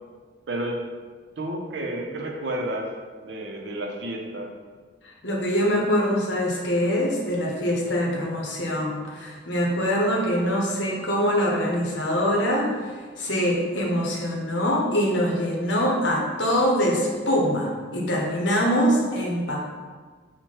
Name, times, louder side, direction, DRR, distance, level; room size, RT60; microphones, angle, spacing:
voice 1, 0.5-0.8 1.4-2.9 3.2-4.5, right 1 dB, 65° right, 1 dB, 0.6 m, -31 dB
voice 2, 5.2-12.7 13.2-19.6, equal, 70° left, -2 dB, 0.9 m, -24 dB
4.5 x 2.2 x 4.4 m, 1.5 s
head